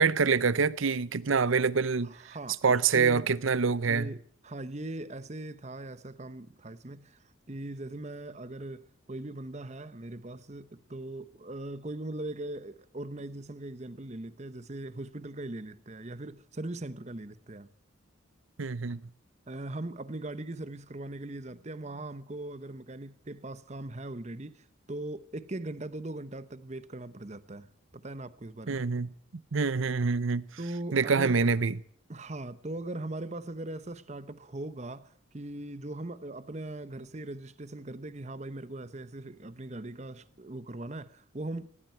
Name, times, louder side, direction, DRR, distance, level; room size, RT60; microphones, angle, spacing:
voice 1, 0.0-2.4 2.6-4.1 18.6-19.0 28.7-29.1 29.5-30.4 30.9-31.8, right 5 dB, 75° right, 0.7 m, -26 dB
voice 2, 2.3-3.3 3.9-7.2 7.5-17.7 19.5-27.7 27.9-28.8 30.6-31.4 32.1-41.7, right 2 dB, 35° right, 0.9 m, -40 dB
18.5 x 17.0 x 4.5 m
head